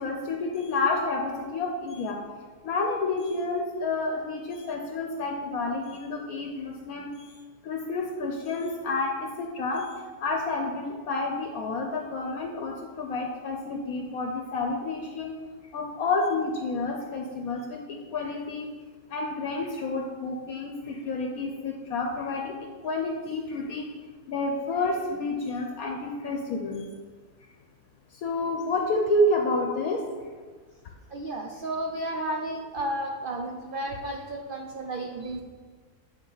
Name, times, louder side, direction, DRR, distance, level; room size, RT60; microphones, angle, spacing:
voice 1, 0.0-2.2 2.6-7.3 7.6-9.9 10.2-15.3 15.7-18.7 19.1-22.5 22.8-23.9 24.3-26.9 28.2-30.0 35.2-35.4, left 2 dB, 70° left, 2 dB, 1.1 m, -29 dB
voice 2, 31.1-35.4, right 1 dB, 70° right, 1 dB, 0.5 m, -32 dB
9.5 x 4.3 x 4.0 m, 1.5 s
omnidirectional pair, 1.7 m